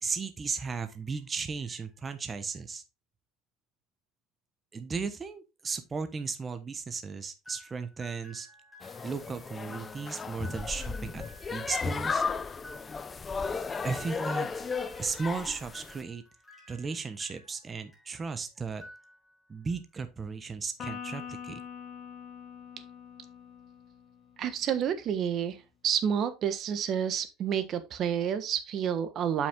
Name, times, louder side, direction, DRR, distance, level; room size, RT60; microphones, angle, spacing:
voice 1, 0.0-2.8 4.7-8.5 9.0-11.2 11.5-12.2 13.8-14.5 15.0-16.2 16.7-18.8 19.5-21.6, right 5 dB, 25° right, 1.0 m, -35 dB
sound 1, 7.4-18.3 18.7-19.5, equal, ahead, 3.8 m, -53 dB
sound 2, 8.8-16.0, left 5 dB, 25° left, 0.6 m, -35 dB
Electric guitar, 20.8-24.3, left 8 dB, 45° left, 2.4 m, -43 dB
voice 2, 24.4-29.5, right 8 dB, 45° right, 1.2 m, -29 dB
7.1 x 5.9 x 3.6 m
supercardioid pair, 115°, 0 cm